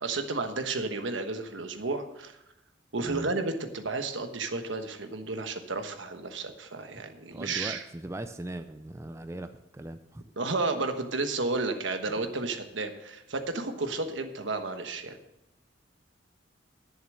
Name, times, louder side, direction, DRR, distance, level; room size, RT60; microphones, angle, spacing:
voice 1, 0.0-2.4 2.9-7.8 10.4-15.2, right 3 dB, 80° right, 7 dB, 1.2 m, -32 dB
voice 2, 7.3-10.3, right 1 dB, 15° right, 9 dB, 0.4 m, -39 dB
11.0 x 7.1 x 6.3 m, 0.88 s
head